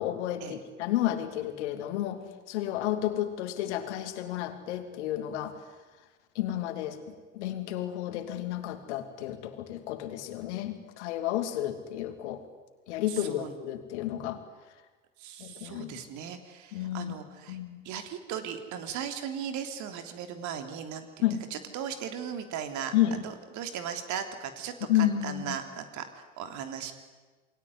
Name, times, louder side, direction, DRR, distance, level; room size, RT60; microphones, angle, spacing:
voice 1, 0.0-2.2 2.5-5.6 6.3-12.4 12.9-14.4 15.4-16.1 16.7-17.2 17.5-17.8 21.2-21.4 22.9-23.2 24.9-25.6, left 12 dB, 65° left, 9 dB, 2.9 m, -31 dB
voice 2, 13.1-13.5 15.2-17.6 17.8-22.9 23.2-26.9, right 8 dB, 50° right, 8 dB, 3.3 m, -37 dB
28.5 x 21.5 x 9.7 m, 1.3 s
figure-of-eight pair, 65°, 37 cm